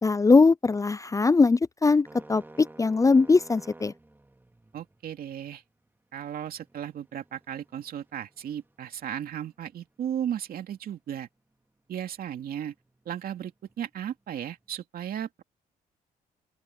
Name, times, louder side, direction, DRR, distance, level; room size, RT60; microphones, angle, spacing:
voice 1, 0.0-3.9, left 4 dB, 20° left, 0.4 m, -21 dB
sound 1, 2.0-14.8, right 2 dB, 15° right, 3.6 m, -55 dB
voice 2, 4.7-5.6 6.1-11.3 11.9-12.7 13.0-15.4, right 10 dB, 70° right, 2.6 m, -35 dB
open air
cardioid pair, 75°, 16 cm